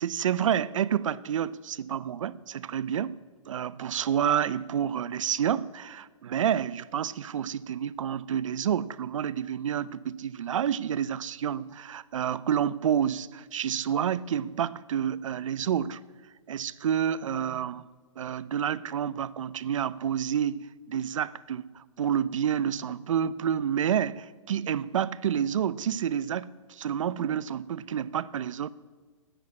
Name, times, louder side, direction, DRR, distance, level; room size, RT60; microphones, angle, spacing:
voice 1, 0.0-3.2 3.5-16.0 16.5-17.9 18.2-28.7, right 9 dB, 70° right, 0.5 m, -29 dB
10.5 x 9.9 x 8.5 m
hypercardioid pair, 165°, 17 cm